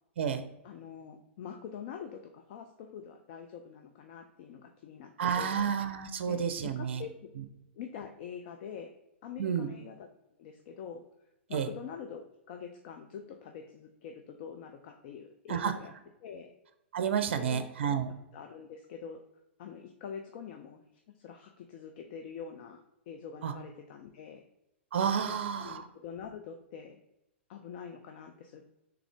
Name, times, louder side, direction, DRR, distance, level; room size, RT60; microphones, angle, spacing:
voice 1, 0.6-5.7 6.3-7.3 7.7-8.9 9.2-10.1 10.4-11.0 11.5-12.2 12.5-15.9 16.2-16.5 17.4-18.0 18.3-19.2 19.6-20.8 21.2-24.4 25.3-27.0 27.5-28.6, left 7 dB, 50° left, 5 dB, 0.4 m, -45 dB
voice 2, 5.2-7.0 9.4-9.7 11.5-11.7 15.5-15.7 16.9-18.1 23.4-23.5 24.9-25.9, right 7 dB, 65° right, 9 dB, 0.5 m, -30 dB
3.7 x 3.4 x 3.4 m, 0.89 s
hypercardioid pair, 110°, 7 cm